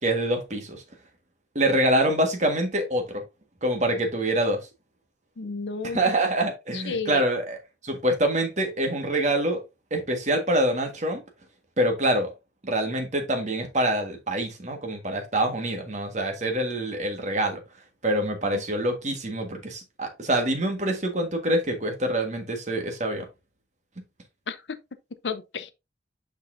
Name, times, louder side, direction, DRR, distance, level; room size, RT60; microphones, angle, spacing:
voice 1, 0.0-0.8 1.5-3.2 3.6-4.7 5.9-7.6 7.8-9.6 9.9-11.2 11.8-12.3 12.6-17.6 18.0-23.3, right 1 dB, 40° right, 1.5 m, -25 dB
voice 2, 5.4-6.0 6.7-7.2 18.5-18.6 24.5-24.8 25.2-25.7, left 4 dB, 85° left, 0.6 m, -32 dB
6.7 x 5.4 x 2.6 m
head